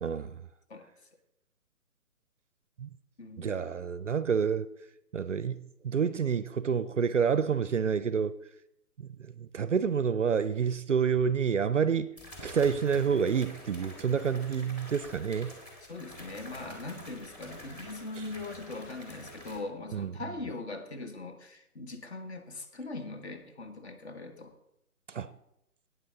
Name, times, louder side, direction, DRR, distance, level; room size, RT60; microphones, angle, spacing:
voice 1, 0.0-0.4 2.8-2.9 3.4-4.7 5.1-8.3 9.0-12.1 12.4-15.6 19.9-20.1 25.1-25.3, right 6 dB, 55° right, 0.5 m, -28 dB
voice 2, 3.2-3.7 15.9-24.5, left 3 dB, 45° left, 1.5 m, -41 dB
sound 1, 11.2-11.3 12.2-19.6, equal, 15° left, 1.6 m, -47 dB
14.0 x 9.2 x 3.6 m
figure-of-eight pair, 145°, 46 cm